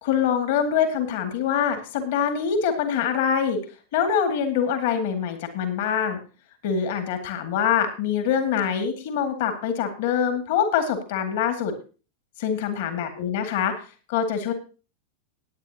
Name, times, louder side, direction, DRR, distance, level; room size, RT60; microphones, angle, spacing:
voice 1, 0.0-3.6 3.9-6.2 6.6-11.7 12.4-13.7 14.1-14.5, left 7 dB, 50° left, 7 dB, 2.1 m, -24 dB
18.0 x 9.4 x 2.8 m, 0.35 s
figure-of-eight pair, 90°, 0 cm